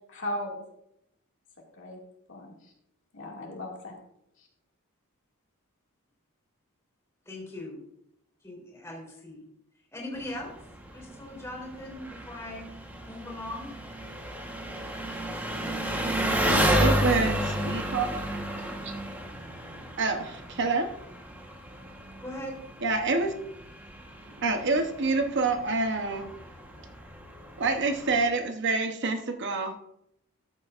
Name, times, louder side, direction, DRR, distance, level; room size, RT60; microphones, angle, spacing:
voice 1, 0.1-0.6 1.8-2.0 2.3-2.7 3.1-3.9 4.4-4.5, left 1 dB, 60° left, -1 dB, 2.1 m, -37 dB
voice 2, 7.2-7.8 8.4-9.4 9.9-10.5 10.9-12.7 13.1-13.7 15.7-17.0 22.2-22.6, left 1 dB, 15° left, -1 dB, 3.4 m, -40 dB
Engine, 10.2-28.3, equal, 10° right, 1.1 m, -32 dB
voice 3, 16.8-18.4 18.8-18.9 19.7-20.9 22.8-23.3 24.4-26.3 27.6-29.8, right 3 dB, 55° right, 6 dB, 0.8 m, -27 dB
13.5 x 7.8 x 2.4 m, 0.78 s
head